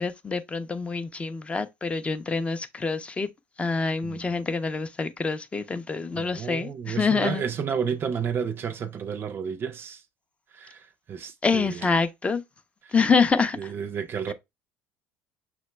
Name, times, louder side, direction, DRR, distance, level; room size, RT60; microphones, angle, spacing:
voice 1, 0.0-3.3 3.6-7.4 11.4-12.4 12.9-13.7, left 4 dB, 20° left, 0.5 m, -26 dB
voice 2, 4.0-4.4 6.2-10.0 10.5-11.9 12.9-13.0 13.6-14.3, right 7 dB, 40° right, 0.4 m, -31 dB
5.9 x 2.1 x 3.1 m
supercardioid pair, 95°, 6 cm